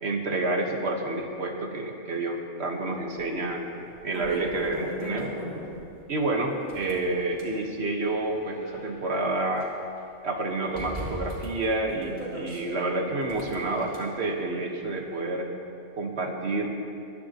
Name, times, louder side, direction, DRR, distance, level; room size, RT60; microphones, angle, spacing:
voice 1, 0.0-3.6 4.0-5.3 6.1-9.7 10.2-15.5 16.0-16.7, right 2 dB, 60° right, 2 dB, 1.7 m, -29 dB
sound 1, 3.2-3.3 3.8-5.9 6.5-7.6 8.2-9.6 10.0-10.1 10.7-12.6 13.2-14.0, right 1 dB, 30° right, 3.3 m, -38 dB
21.0 x 14.0 x 3.0 m, 2.7 s
omnidirectional pair, 1.2 m